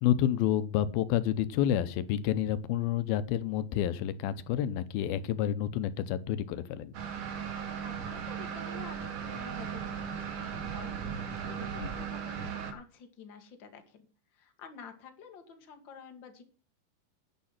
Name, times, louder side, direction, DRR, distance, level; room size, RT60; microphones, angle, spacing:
voice 1, 0.0-6.9 11.8-11.9, left 11 dB, 90° left, 14 dB, 2.7 m, -29 dB
sound 1, 6.9-12.7, right 7 dB, 60° right, 3.4 m, -37 dB
voice 2, 7.7-14.0 14.3-16.4, left 6 dB, 35° left, 6 dB, 2.3 m, -50 dB
10.5 x 9.6 x 5.9 m, 0.37 s
omnidirectional pair, 4.2 m